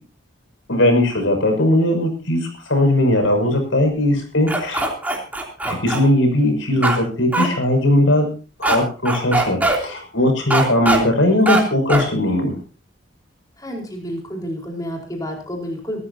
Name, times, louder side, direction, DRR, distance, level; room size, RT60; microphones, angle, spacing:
voice 1, 0.7-4.9 5.6-8.3 8.6-12.6, left 1 dB, 90° left, 4 dB, 6.5 m, -18 dB
sound 1, 4.5-6.0 6.8-7.0 7.3-7.5 8.6-8.8 9.1-9.8 10.5-11.0 11.5-11.6 11.9-12.1, right 2 dB, 10° right, 3.1 m, -20 dB
voice 2, 13.6-16.0, equal, 20° left, 0 dB, 4.5 m, -30 dB
24.5 x 13.5 x 2.8 m, 0.35 s
head